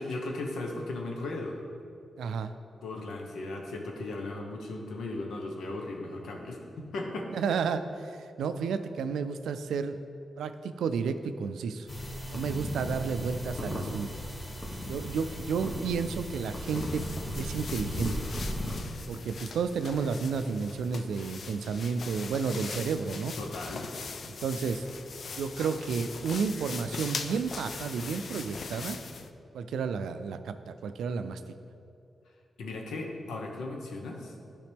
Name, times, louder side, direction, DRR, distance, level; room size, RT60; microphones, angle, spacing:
voice 1, 0.0-1.6 2.8-7.3 23.4-23.8 32.6-34.3, left 2 dB, 85° left, 1 dB, 1.0 m, -37 dB
voice 2, 2.2-2.5 7.3-10.0 10.4-11.9 12.3-14.1 14.9-17.0 17.4-18.3 19.1-23.4 24.3-24.9 25.4-29.0 29.5-31.4, right 5 dB, 90° right, 10 dB, 0.3 m, -32 dB
sound 1, 11.9-18.8, equal, 35° left, 1.4 m, -36 dB
sound 2, 16.7-29.3, left 5 dB, 65° left, 0.4 m, -41 dB
11.0 x 5.0 x 3.5 m, 2.5 s
cardioid pair, 60°, 0 cm